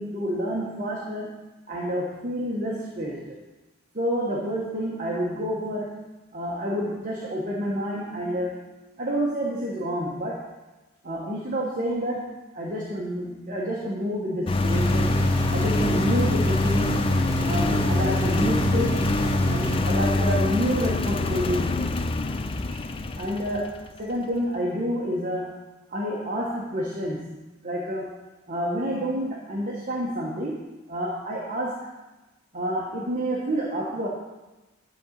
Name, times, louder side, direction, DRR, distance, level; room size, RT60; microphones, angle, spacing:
voice 1, 0.0-3.4 3.9-8.6 9.0-10.5 11.0-15.2 15.5-17.2 17.4-19.1 19.5-21.9 22.7-22.9 23.2-25.6 25.9-27.3 27.6-28.2 28.5-31.9 32.5-34.1, equal, 40° right, -3 dB, 1.2 m, -29 dB
Engine, 14.5-23.9, left 2 dB, 25° left, 0.4 m, -24 dB
sound 1, 14.6-19.8, right 5 dB, 20° right, 3.3 m, -30 dB
11.0 x 3.9 x 7.3 m, 1.1 s
head